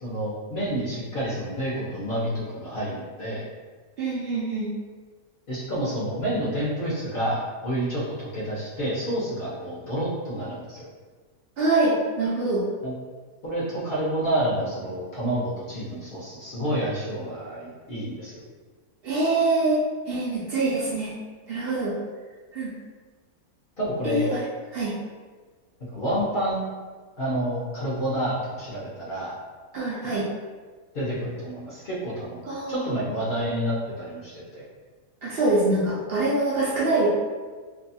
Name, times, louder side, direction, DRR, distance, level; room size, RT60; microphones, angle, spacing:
voice 1, 0.0-3.4 5.5-10.9 12.8-12.9 13.4-18.4 23.8-24.3 25.9-26.6 27.2-29.4 30.9-34.6, right 1 dB, 55° left, -8 dB, 0.7 m, -29 dB
voice 2, 4.0-4.7 11.6-12.6 19.0-19.8 20.1-21.1 21.5-21.9 22.5-22.7 24.0-24.4 24.7-24.9 29.7-30.3 32.4-32.8 35.2-37.1, right 2 dB, 75° right, -7 dB, 0.5 m, -24 dB
2.7 x 2.3 x 2.6 m, 1.4 s
omnidirectional pair, 1.6 m